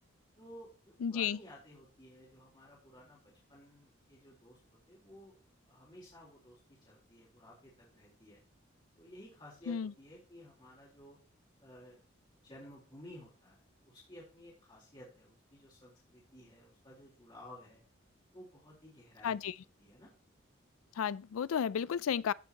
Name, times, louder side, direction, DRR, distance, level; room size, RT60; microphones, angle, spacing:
voice 1, 0.4-3.2 3.5-4.6 4.9-5.3 5.7-8.4 9.0-11.2 11.6-12.0 12.3-17.8 18.3-19.4 19.8-20.1, left 1 dB, 20° left, 3.8 m, -55 dB
voice 2, 1.0-1.4 9.7-9.9 19.2-19.5 21.0-22.3, left 7 dB, 90° left, 0.4 m, -33 dB
15.0 x 7.0 x 2.9 m
head